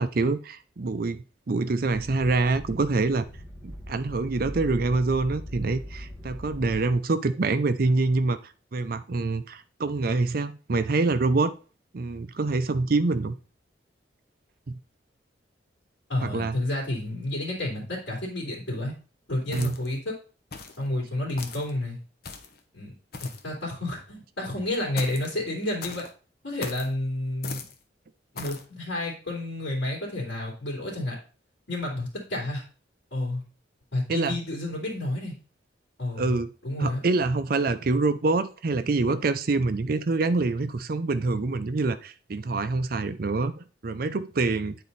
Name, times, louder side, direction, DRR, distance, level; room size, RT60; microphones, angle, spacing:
voice 1, 0.0-3.2 3.6-8.4 8.7-11.5 11.9-13.4 14.7-14.8 16.2-16.6 19.5-19.8 34.1-34.4 36.2-36.5 36.8-44.8, right 3 dB, 50° right, 12 dB, 0.5 m, -26 dB
sound 1, 1.9-6.9, equal, 10° left, 1.3 m, -40 dB
voice 2, 16.1-18.9 19.3-20.1 20.8-22.0 22.7-22.9 23.2-26.1 26.4-27.6 28.3-31.1 31.7-32.6 33.1-33.4 33.9-35.3 36.0-37.0, left 1 dB, 75° left, -4 dB, 2.8 m, -30 dB
sound 2, 19.5-20.0 20.5-20.8 21.4-21.7 22.2-22.6 23.1-23.5 25.0-25.3 25.8-26.1 26.6-26.9 27.4-27.8 28.4-28.7, left 4 dB, 55° left, 0.9 m, -39 dB
9.0 x 4.3 x 4.0 m, 0.37 s
head